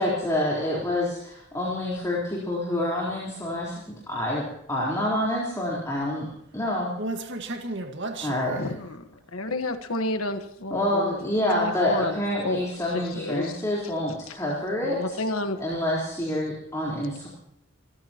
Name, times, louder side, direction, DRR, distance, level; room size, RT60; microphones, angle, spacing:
voice 1, 0.0-3.8 4.1-6.3 6.5-6.9 8.2-8.6 10.7-15.2 15.6-17.3, left 1 dB, 15° left, -5 dB, 4.1 m, -27 dB
voice 2, 7.0-8.7, right 2 dB, 60° right, 4 dB, 1.8 m, -33 dB
voice 3, 8.5-8.9 9.3-11.2 11.5-12.6 12.9-13.6 14.3-14.4 14.8-15.9, left 2 dB, 85° left, 7 dB, 1.5 m, -31 dB
27.5 x 14.5 x 3.0 m, 0.79 s
head